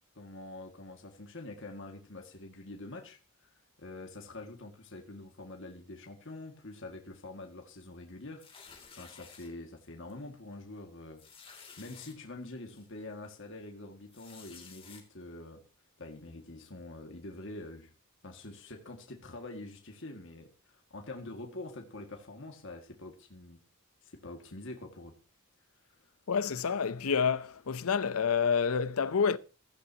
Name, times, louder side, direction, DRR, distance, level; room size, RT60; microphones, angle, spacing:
voice 1, 0.2-3.2 3.8-8.4 9.0-11.2 11.8-15.6 16.0-17.9 18.2-23.6 24.0-25.1, left 2 dB, 55° left, 2.0 m, -45 dB
sound 1, 8.4-9.5 10.1-10.3 10.5-10.6 11.2-12.1 12.7-12.9 14.1-15.0, left 6 dB, 25° left, 2.4 m, -52 dB
voice 2, 26.3-29.4, left 6 dB, 75° left, 0.6 m, -28 dB
15.5 x 14.5 x 2.9 m
head